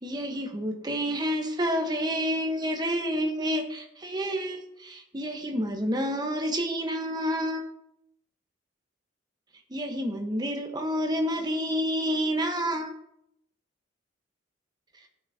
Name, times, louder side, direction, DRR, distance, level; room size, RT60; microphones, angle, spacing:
voice 1, 0.0-7.6 9.7-12.9, equal, 20° right, 3 dB, 1.0 m, -29 dB
11.5 x 5.9 x 2.7 m, 0.79 s
head